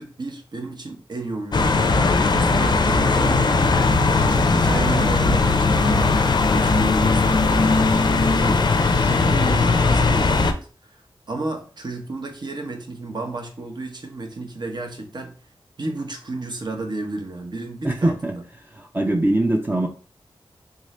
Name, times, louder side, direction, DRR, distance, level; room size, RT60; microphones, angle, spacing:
voice 1, 0.0-1.8 2.3-3.9 4.3-6.1 6.5-7.9 8.4-8.7 9.0-11.0 11.3-15.3 15.8-18.4, right 2 dB, 50° right, 4 dB, 0.8 m, -32 dB
sound 1, 1.5-10.5, left 3 dB, 50° left, 0.4 m, -18 dB
voice 2, 17.8-18.3 18.7-19.9, right 1 dB, 20° right, 2 dB, 0.5 m, -22 dB
3.7 x 2.6 x 3.1 m, 0.38 s
wide cardioid pair, 80°, 9 cm